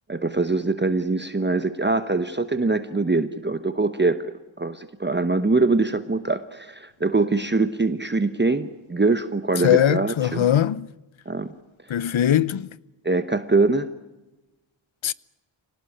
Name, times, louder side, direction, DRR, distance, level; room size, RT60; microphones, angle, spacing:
voice 1, 0.1-10.5 11.3-11.5 12.1-12.2 13.0-13.9, right 3 dB, 20° right, 1.1 m, -23 dB
voice 2, 9.6-10.9 11.9-12.7 15.0-15.1, left 11 dB, 70° left, 0.8 m, -20 dB
25.5 x 18.5 x 10.0 m
wide cardioid pair, 85°, 49 cm